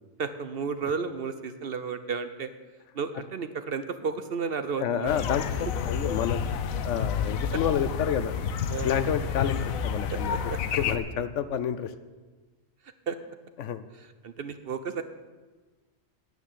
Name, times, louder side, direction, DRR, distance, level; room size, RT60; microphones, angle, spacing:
voice 1, 0.2-2.5 2.9-5.1 8.7-8.9 10.1-10.6 13.1-13.2 13.9-15.0, right 5 dB, 55° right, 10 dB, 0.7 m, -33 dB
voice 2, 4.8-6.4 6.8-8.3 8.8-10.3 10.8-11.9 13.6-13.8, left 8 dB, 70° left, 13 dB, 0.9 m, -29 dB
sound 1, 5.1-11.0, left 7 dB, 85° left, 1.2 m, -30 dB
10.0 x 9.2 x 7.5 m, 1.3 s
omnidirectional pair, 1.4 m